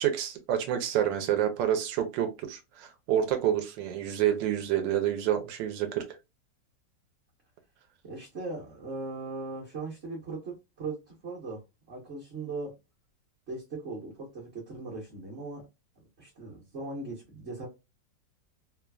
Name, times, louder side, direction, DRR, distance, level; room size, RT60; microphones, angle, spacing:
voice 1, 0.0-6.1, right 10 dB, 80° right, 1.3 m, -28 dB
voice 2, 8.0-11.6 11.9-12.7 13.5-15.6 16.2-17.7, right 3 dB, 45° right, 1.0 m, -39 dB
3.1 x 2.2 x 2.2 m
omnidirectional pair, 2.0 m